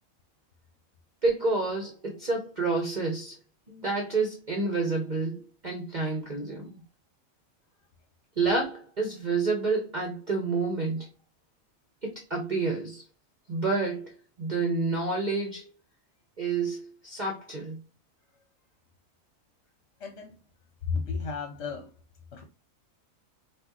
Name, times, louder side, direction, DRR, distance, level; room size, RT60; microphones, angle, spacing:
voice 1, 1.2-3.4 3.7-6.8 8.4-11.1 12.0-13.0 13.5-15.6 16.4-17.8, right 3 dB, 35° right, 1.1 m, -29 dB
voice 2, 20.0-20.4 20.9-21.9 22.3-22.4, left 5 dB, 55° left, 1.0 m, -33 dB
6.0 x 2.6 x 3.0 m
omnidirectional pair, 1.4 m